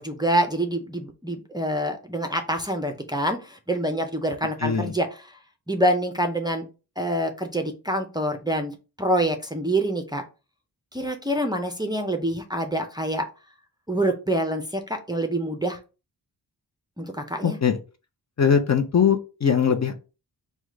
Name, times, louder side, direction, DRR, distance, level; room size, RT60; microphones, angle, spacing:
voice 1, 0.0-5.1 5.7-6.7 7.0-8.7 9.0-10.2 10.9-13.3 13.9-15.8 17.0-17.6, right 1 dB, 10° right, 3 dB, 0.4 m, -26 dB
voice 2, 4.6-4.9 17.4-17.8 18.4-19.9, left 7 dB, 40° left, 7 dB, 0.5 m, -21 dB
4.7 x 2.2 x 3.6 m, 0.31 s
wide cardioid pair, 170°, 41 cm